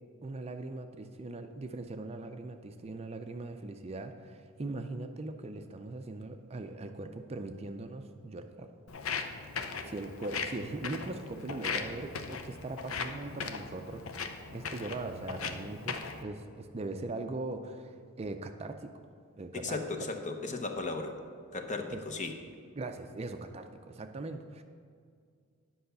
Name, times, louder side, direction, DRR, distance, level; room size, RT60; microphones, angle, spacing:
voice 1, 0.2-8.7 9.8-19.0 19.4-19.8 21.9-22.0 22.8-24.6, right 2 dB, 30° right, 7 dB, 0.4 m, -40 dB
Walk footsteps, 8.9-16.2, left 5 dB, 70° left, 0.7 m, -38 dB
voice 2, 19.5-21.2 21.5-22.4, left 3 dB, 35° left, 5 dB, 0.8 m, -36 dB
10.0 x 5.5 x 6.8 m, 2.2 s
head